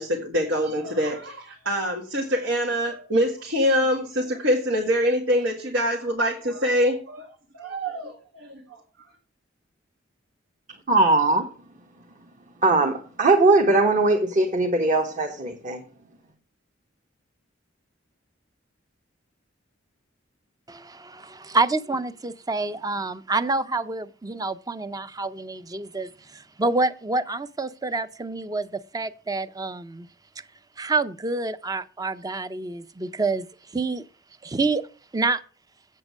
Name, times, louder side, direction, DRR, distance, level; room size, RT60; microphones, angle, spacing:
voice 1, 0.0-7.3 7.5-8.6, equal, 85° right, 1.9 m, -24 dB
voice 2, 10.9-11.5 12.6-15.8, right 2 dB, 40° right, 1.3 m, -20 dB
voice 3, 20.7-30.1 30.8-33.5 33.7-34.0 34.4-34.8 35.1-35.4, right 3 dB, 20° right, 0.5 m, -27 dB
8.1 x 7.6 x 6.3 m
head